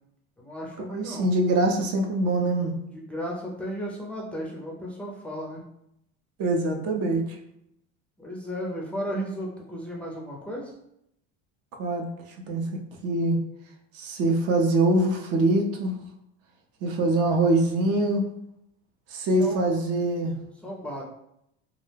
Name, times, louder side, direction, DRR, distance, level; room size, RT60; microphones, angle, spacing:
voice 1, 0.4-1.3 2.9-5.6 8.2-10.7 19.4-19.6 20.6-21.0, equal, 5° left, -3 dB, 0.4 m, -34 dB
voice 2, 0.9-2.8 6.4-7.4 11.8-12.1 12.5-13.4 13.9-16.0 16.8-18.3 19.1-20.3, right 2 dB, 50° right, 3 dB, 0.5 m, -24 dB
2.3 x 2.1 x 3.2 m, 0.78 s
supercardioid pair, 115°, 30 cm